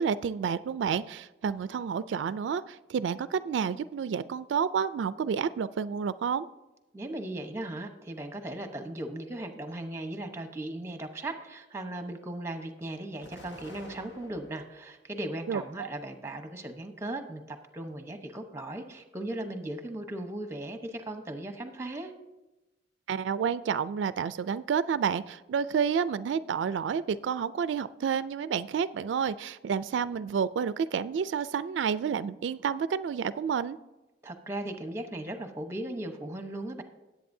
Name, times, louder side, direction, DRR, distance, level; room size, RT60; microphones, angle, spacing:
voice 1, 0.0-6.5 15.5-15.9 23.1-33.8, right 7 dB, 85° right, 15 dB, 0.3 m, -30 dB
voice 2, 6.9-22.1 34.2-36.8, right 1 dB, 15° right, 7 dB, 0.9 m, -37 dB
Explosion, 13.2-14.9 15.4-16.3, left 1 dB, 80° left, 1.3 m, -50 dB
18.0 x 8.2 x 2.7 m, 1.0 s
head